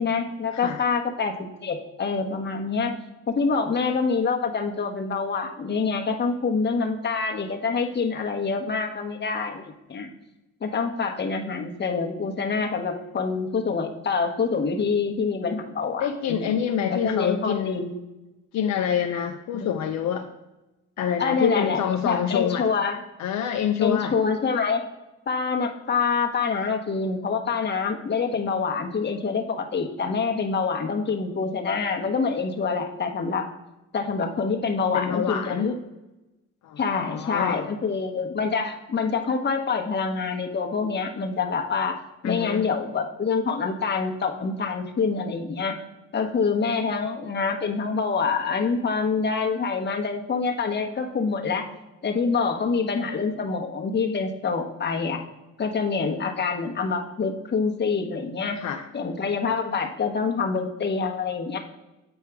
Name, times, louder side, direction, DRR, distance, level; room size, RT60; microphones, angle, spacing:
voice 1, 0.0-3.0 3.3-10.1 10.6-16.5 16.9-18.0 19.5-19.8 21.2-23.0 23.8-24.8 25.3-33.4 33.9-35.8 36.8-42.0 42.2-45.8 46.1-51.7 52.0-55.2 55.6-58.6 58.9-61.6, left 5 dB, 35° left, 3 dB, 1.0 m, -26 dB
voice 2, 16.0-17.8 18.5-20.3 21.0-22.7 23.2-24.1 34.8-35.7 36.6-36.8 37.1-37.6 42.2-42.7 58.6-58.8, left 8 dB, 65° left, 5 dB, 0.6 m, -26 dB
8.0 x 4.5 x 3.5 m, 1.0 s
cardioid pair, 90°, 30 cm